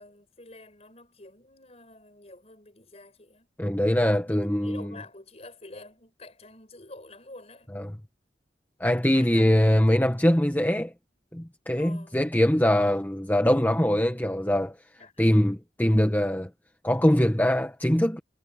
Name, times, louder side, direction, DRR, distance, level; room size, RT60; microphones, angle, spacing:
voice 1, 0.0-3.5 4.2-7.7 9.1-9.5 9.8-9.9 11.7-12.2 15.0-15.3, left 2 dB, 35° left, 6.6 m, -48 dB
voice 2, 3.6-4.9 7.7-7.9 8.8-10.9 11.3-14.7 15.2-16.5 16.8-18.2, equal, 10° left, 1.5 m, -22 dB
head